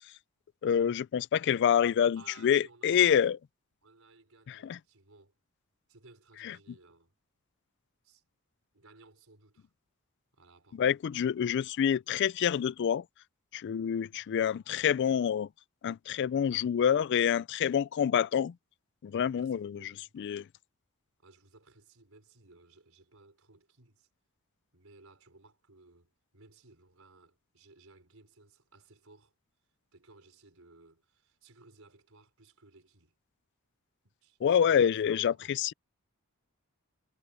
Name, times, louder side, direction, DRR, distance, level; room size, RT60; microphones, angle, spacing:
voice 1, 0.6-3.4 4.6-4.8 10.8-13.0 13.5-15.5 15.8-18.5 19.0-19.8 20.2-20.4 34.4-35.3 35.6-35.7, left 8 dB, 55° left, 0.3 m, -27 dB
voice 2, 2.1-3.3 3.8-5.3 5.9-7.1 8.0-8.2 8.7-9.7 10.3-10.9 19.3-20.1 21.2-24.1 24.7-29.3 29.9-33.1 34.0-35.6, right 3 dB, 70° right, 5.1 m, -59 dB
head